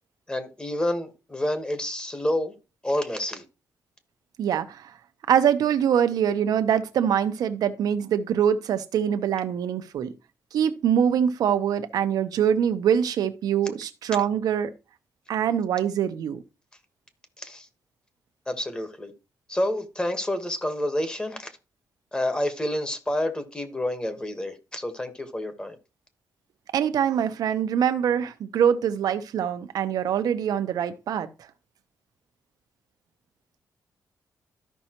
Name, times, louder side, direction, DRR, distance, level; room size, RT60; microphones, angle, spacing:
voice 1, 0.3-2.5 2.8-3.4 17.4-17.7 18.5-19.1 19.5-21.5 22.1-25.8, left 1 dB, 15° left, 1.3 m, -28 dB
voice 2, 4.4-4.9 5.3-10.1 10.5-14.7 15.3-16.4 26.7-31.3, right 8 dB, 85° right, 0.8 m, -24 dB
13.0 x 5.4 x 3.0 m
wide cardioid pair, 130°, 6 cm